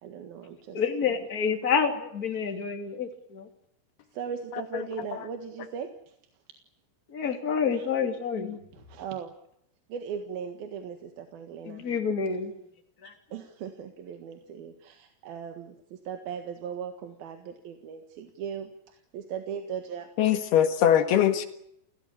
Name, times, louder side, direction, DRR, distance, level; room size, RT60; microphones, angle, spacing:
voice 1, 0.0-1.2 4.1-6.1 7.7-7.9 8.7-9.3 9.9-11.8 13.0-20.1, right 7 dB, 65° right, 3.3 m, -38 dB
voice 2, 0.7-3.5 7.1-8.6 11.6-12.5 13.0-13.1, left 6 dB, 25° left, 2.7 m, -28 dB
voice 3, 20.2-21.5, left 10 dB, 70° left, 3.5 m, -21 dB
29.0 x 17.0 x 8.6 m
omnidirectional pair, 5.0 m